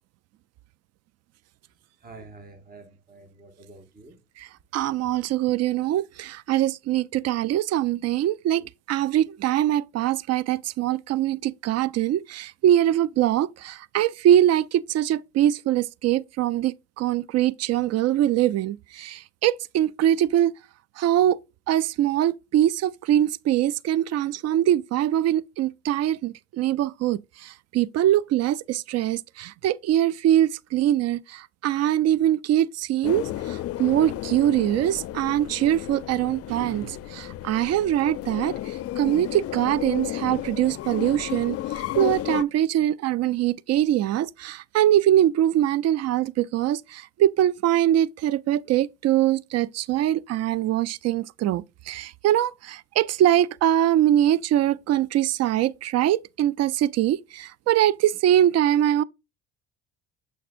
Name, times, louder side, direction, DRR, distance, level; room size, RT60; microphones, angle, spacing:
voice 1, 2.0-4.2, right 3 dB, 30° right, 1.8 m, -47 dB
voice 2, 4.7-20.5 21.0-21.4 21.7-33.2 33.5-38.6 39.0-41.6 42.0-59.0, right 12 dB, 50° right, 0.4 m, -23 dB
sound 1, 33.0-42.4, left 13 dB, 45° left, 0.5 m, -33 dB
7.6 x 5.2 x 2.5 m
supercardioid pair, 80°, 32 cm